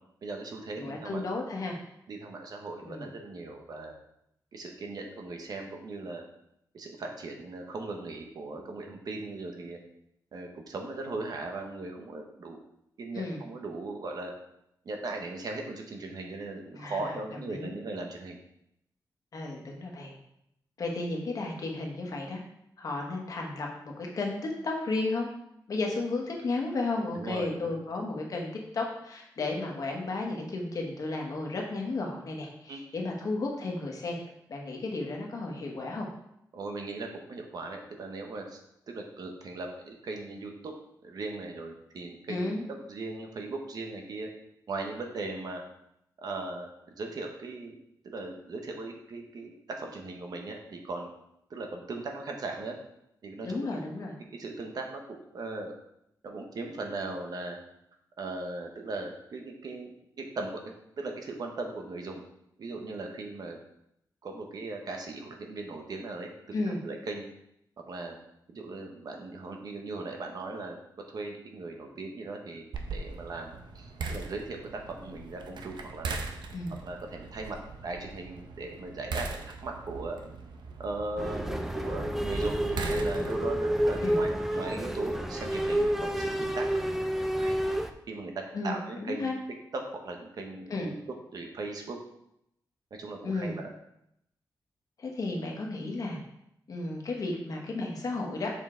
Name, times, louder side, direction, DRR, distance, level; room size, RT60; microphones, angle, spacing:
voice 1, 0.2-1.2 2.1-3.9 4.5-6.2 6.7-9.8 10.3-12.6 13.0-14.3 14.8-18.4 27.1-27.8 32.7-32.8 36.5-38.6 38.9-40.7 41.0-42.4 42.9-44.3 44.7-45.6 46.2-47.8 48.0-51.1 51.5-52.8 53.2-53.7 54.3-55.0 55.3-55.7 56.2-57.6 58.2-62.2 62.6-63.6 64.2-66.5 66.8-67.3 67.9-68.2 68.5-70.8 71.1-76.1 76.8-77.6 77.8-80.2 80.8-87.6 88.1-89.3 89.7-90.9 91.3-92.0 93.0-93.7, right 3 dB, 60° right, 2 dB, 1.0 m, -38 dB
voice 2, 0.8-1.8 2.9-3.1 13.1-13.4 16.7-17.1 17.5-17.7 19.3-20.2 20.8-22.4 22.8-24.4 24.6-25.3 25.7-34.2 34.5-36.1 42.3-42.6 53.4-54.2 66.5-66.8 76.5-76.7 84.0-84.2 88.5-89.4 90.7-90.9 93.2-93.6 95.0-96.2 96.7-98.5, left 2 dB, 50° left, 0 dB, 1.3 m, -33 dB
sound 1, 72.7-83.6, right 4 dB, 85° right, 0.7 m, -40 dB
sound 2, 81.2-87.9, right 1 dB, 5° right, 0.4 m, -29 dB
6.8 x 5.3 x 3.8 m, 0.79 s
wide cardioid pair, 175°, 8 cm